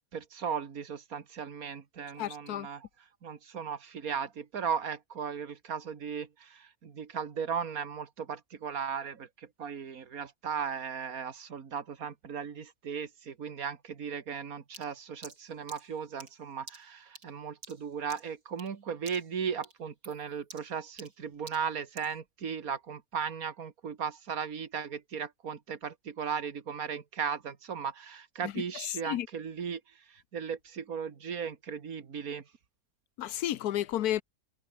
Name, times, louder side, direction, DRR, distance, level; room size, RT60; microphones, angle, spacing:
voice 1, 0.1-2.9 3.2-29.8 30.1-32.4, right 7 dB, 65° right, 2.2 m, -37 dB
voice 2, 2.2-2.7 28.4-29.3 33.2-34.2, left 12 dB, 80° left, 1.2 m, -32 dB
sound 1, 14.7-18.8 19.1-19.4 19.6-22.2, right 3 dB, 90° right, 5.2 m, -51 dB
omnidirectional pair, 1.6 m